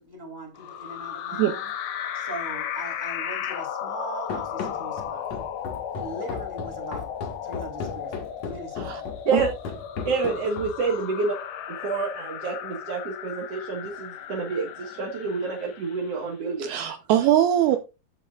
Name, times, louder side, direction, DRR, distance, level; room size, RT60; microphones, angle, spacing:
voice 1, 0.0-1.7 2.1-5.4 5.9-7.1 7.4-9.1, right 2 dB, 5° right, 3.1 m, -40 dB
sound 1, 0.6-16.2, left 9 dB, 80° left, 3.5 m, -35 dB
Run, 4.3-10.9, left 5 dB, 50° left, 2.3 m, -36 dB
voice 2, 10.0-11.4 11.7-16.7, right 4 dB, 60° right, 1.7 m, -28 dB
voice 3, 16.6-17.8, right 12 dB, 75° right, 2.5 m, -21 dB
14.5 x 8.7 x 2.5 m
omnidirectional pair, 5.1 m